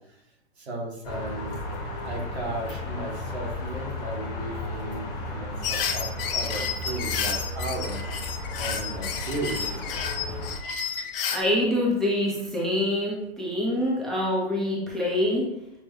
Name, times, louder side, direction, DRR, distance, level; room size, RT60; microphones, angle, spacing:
voice 1, 0.6-1.6 2.0-8.1 8.6-9.8, right 2 dB, 90° right, -2 dB, 1.3 m, -35 dB
sound 1, 1.0-10.5, left 1 dB, 35° left, 1.1 m, -34 dB
sound 2, 5.6-11.4, left 7 dB, 60° left, 0.6 m, -31 dB
voice 2, 11.3-15.5, left 1 dB, ahead, -5 dB, 0.4 m, -25 dB
6.2 x 2.1 x 3.1 m, 0.84 s
hypercardioid pair, 130°, 32 cm